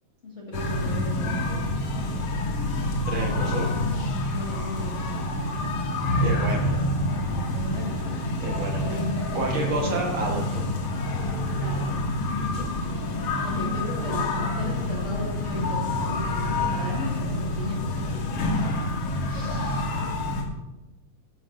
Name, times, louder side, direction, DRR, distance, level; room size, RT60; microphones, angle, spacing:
voice 1, 0.2-1.8 3.3-5.2 7.5-8.1 8.8-9.8 11.6-11.9 13.4-14.3 14.5-18.3, left 1 dB, 35° left, -4 dB, 1.1 m, -37 dB
sound 1, 0.5-20.4, left 1 dB, 55° left, 1.8 m, -27 dB
voice 2, 3.1-3.7 6.2-6.8 8.4-9.0 9.3-10.6 12.3-12.7 19.3-19.9, right 3 dB, 65° right, 0 dB, 1.3 m, -31 dB
15.5 x 9.6 x 2.6 m, 1.1 s
omnidirectional pair, 4.1 m